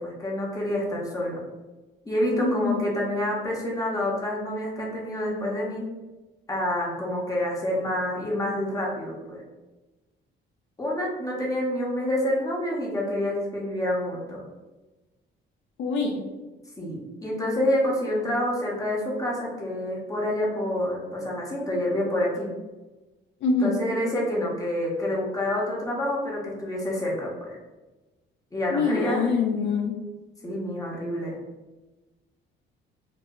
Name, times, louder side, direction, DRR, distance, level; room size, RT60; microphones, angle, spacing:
voice 1, 0.0-1.4 2.0-5.8 6.5-9.4 10.8-14.4 16.8-22.5 23.6-27.6 28.5-29.2 30.4-31.4, left 1 dB, 15° left, -4 dB, 0.8 m, -28 dB
voice 2, 2.4-2.8 15.8-16.3 23.4-23.8 28.7-29.9, left 4 dB, 65° left, 1 dB, 0.4 m, -24 dB
2.2 x 2.0 x 3.5 m, 1.2 s
cardioid pair, 90°, 20 cm